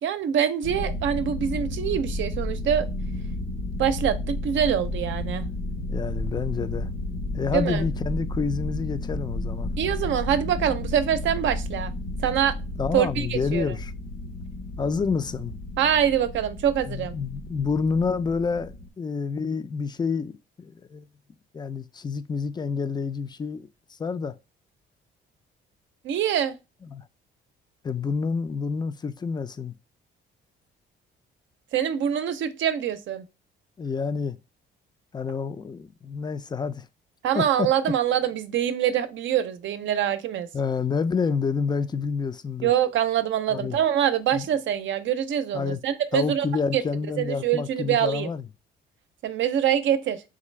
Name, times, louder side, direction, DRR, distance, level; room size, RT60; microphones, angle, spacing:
voice 1, 0.0-2.9 3.8-5.5 7.5-7.8 9.8-11.9 12.2-12.6 12.9-13.7 15.8-17.1 26.0-26.5 31.7-33.2 37.2-40.5 42.6-46.5 46.7-46.8 47.2-48.3 49.2-50.2, right 9 dB, 70° right, 0.6 m, -24 dB
sound 1, 0.6-18.9, left 1 dB, 75° left, 1.0 m, -32 dB
voice 2, 5.9-6.9 7.3-9.7 12.8-13.9 14.8-15.6 16.9-21.1 21.5-23.7 24.0-24.3 26.8-27.0 27.8-29.7 33.8-34.4 35.1-36.9 37.3-37.7 40.5-42.7 43.5-43.8 44.3-44.5 45.5-45.8 46.1-48.5, left 5 dB, 20° left, 0.4 m, -28 dB
3.8 x 3.2 x 3.1 m
cardioid pair, 90°, 20 cm